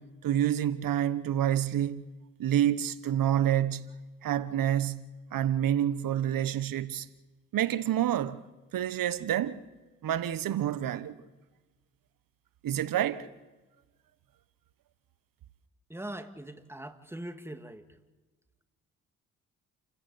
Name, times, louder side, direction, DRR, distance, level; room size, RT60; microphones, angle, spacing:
voice 1, 0.0-2.0 2.4-3.9 4.2-7.1 7.5-8.4 8.7-9.6 10.0-11.2 12.6-13.3, right 11 dB, 65° right, 1.3 m, -28 dB
voice 2, 15.9-17.9, right 1 dB, 5° right, 2.2 m, -41 dB
29.0 x 14.5 x 8.5 m
supercardioid pair, 60°, 36 cm